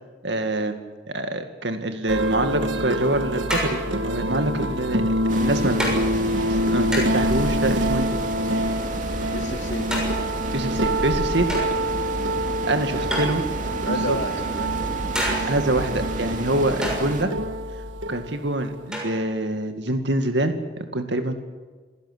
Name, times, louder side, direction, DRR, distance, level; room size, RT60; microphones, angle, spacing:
voice 1, 0.2-0.8 1.1-5.0 5.4-5.8 6.5-8.1 10.5-11.5 12.6-13.4 14.1-14.2 15.5-17.3 18.1-21.3, right 1 dB, 70° right, 7 dB, 2.1 m, -25 dB
sound 1, 2.1-18.9, right 1 dB, 85° right, 1.6 m, -26 dB
sound 2, 3.5-4.2 5.0-5.2 5.8-6.0 6.9-7.3 8.5-9.1 9.9-10.4 11.5-12.0 13.1-13.8 15.1-15.7 16.8-17.1 18.9-19.4, equal, 5° right, 6.6 m, -29 dB
sound 3, 5.3-17.2, right 1 dB, 45° right, 2.5 m, -32 dB
voice 2, 9.3-10.1 13.8-15.0 15.4-15.5, left 2 dB, 65° left, 4 dB, 3.0 m, -31 dB
27.5 x 17.5 x 8.1 m, 1.4 s
head